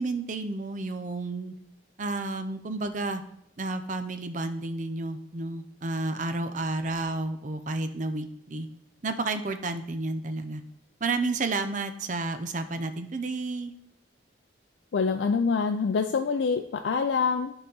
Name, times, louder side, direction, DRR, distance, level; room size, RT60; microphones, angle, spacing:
voice 1, 0.0-1.5 2.0-3.2 3.6-8.7 9.0-10.6 11.0-13.7, right 3 dB, 45° right, 9 dB, 0.5 m, -31 dB
voice 2, 14.9-17.5, left 5 dB, 75° left, 5 dB, 0.4 m, -25 dB
8.9 x 3.9 x 3.9 m, 0.75 s
head